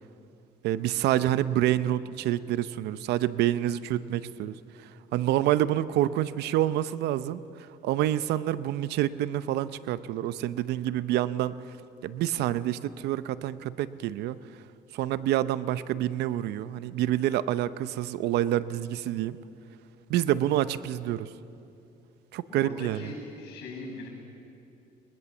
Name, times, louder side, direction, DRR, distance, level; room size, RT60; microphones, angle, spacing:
voice 1, 0.6-4.6 5.1-7.4 7.8-11.6 12.0-14.4 14.9-19.4 20.1-21.3 22.3-23.1, right 13 dB, 80° right, 15 dB, 0.7 m, -27 dB
voice 2, 22.5-24.1, left 2 dB, 85° left, 1 dB, 7.6 m, -40 dB
22.0 x 21.0 x 7.3 m, 2.7 s
cardioid pair, 110°, 17 cm